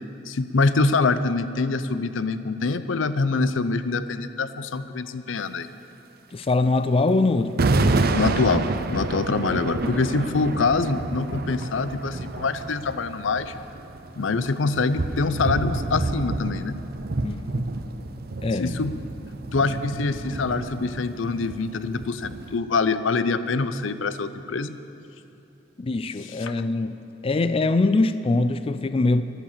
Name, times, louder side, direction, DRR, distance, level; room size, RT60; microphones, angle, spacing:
voice 1, 0.3-5.7 8.1-13.5 14.2-16.8 18.6-18.9 19.5-24.8 26.2-26.5, left 3 dB, 90° left, 13 dB, 0.6 m, -25 dB
voice 2, 6.3-7.6 17.2-17.4 18.4-18.8 25.8-29.2, left 3 dB, 30° left, 12 dB, 0.4 m, -23 dB
sound 1, 6.4-6.5 7.6-22.6, right 2 dB, 55° right, 0.7 m, -28 dB
13.5 x 11.0 x 7.3 m, 2.8 s
head